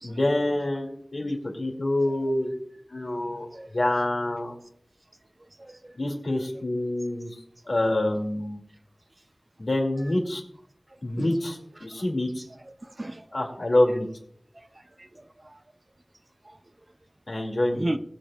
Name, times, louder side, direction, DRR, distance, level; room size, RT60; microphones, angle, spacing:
voice 1, 0.0-2.5 2.9-4.6 5.9-7.3 7.7-8.6 9.6-10.4 11.0-12.4 13.3-14.1 17.3-17.9, left 1 dB, 75° left, 1 dB, 2.6 m, -26 dB
voice 2, 5.6-5.9 11.2-11.4 12.8-13.2 14.6-14.7 15.0-15.6 17.7-18.0, right 1 dB, 40° right, 9 dB, 0.6 m, -34 dB
20.5 x 7.5 x 2.4 m, 0.69 s
wide cardioid pair, 55°, 0 cm